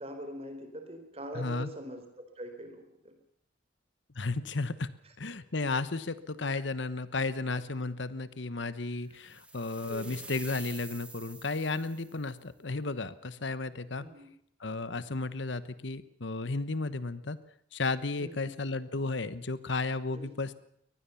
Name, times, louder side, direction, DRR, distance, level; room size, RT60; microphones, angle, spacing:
voice 1, 0.0-3.1 5.0-5.1 9.9-10.2 14.0-14.3 18.2-18.5 20.1-20.4, equal, 30° right, 7 dB, 4.0 m, -43 dB
voice 2, 1.3-1.7 4.1-4.9 5.2-14.0 14.6-17.4 17.7-20.6, left 3 dB, 65° left, 14 dB, 1.1 m, -33 dB
sound 1, 9.2-12.3, right 2 dB, 5° right, 2.4 m, -47 dB
23.5 x 19.5 x 7.1 m, 0.68 s
head